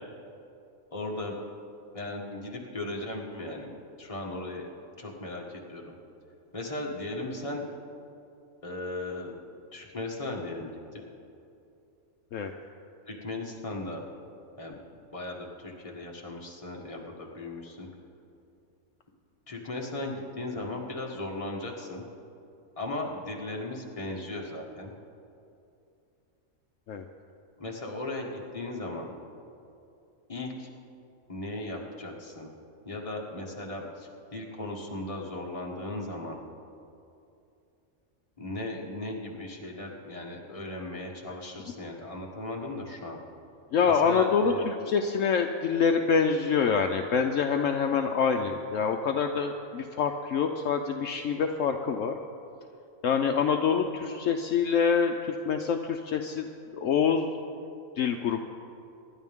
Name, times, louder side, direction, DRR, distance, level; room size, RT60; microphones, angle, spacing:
voice 1, 0.9-1.4 1.9-4.7 5.0-5.9 6.5-7.6 8.6-9.3 9.7-11.0 13.0-14.0 14.6-14.8 15.1-17.9 19.5-22.0 22.8-24.9 27.6-29.2 30.3-30.7 31.3-32.5 32.9-36.4 38.4-43.2 43.8-44.7, left 2 dB, 25° left, -1 dB, 1.7 m, -37 dB
voice 2, 43.7-52.2 53.0-56.5 56.8-57.3 58.0-58.4, left 6 dB, 70° left, 5 dB, 1.0 m, -26 dB
25.5 x 11.0 x 3.6 m, 2.7 s
omnidirectional pair, 1.5 m